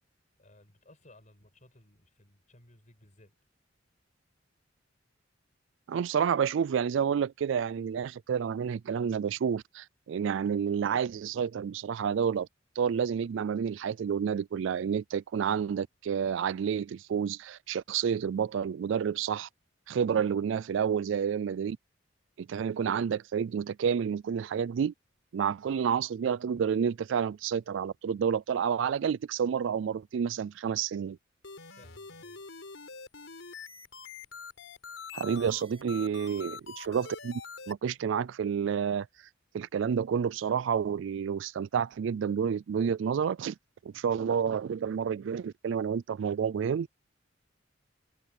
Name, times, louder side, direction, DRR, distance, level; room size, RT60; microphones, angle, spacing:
voice 1, 0.4-3.4 19.9-20.1 31.8-32.4 35.3-35.5, left 1 dB, 40° left, 6.2 m, -59 dB
voice 2, 5.9-12.5 12.8-19.5 19.9-21.8 22.4-24.9 25.3-31.2 35.1-37.4 37.7-39.1 39.5-43.5 43.9-46.9, right 7 dB, 70° right, 0.3 m, -29 dB
sound 1, 31.4-37.7, left 5 dB, 85° left, 4.3 m, -45 dB
head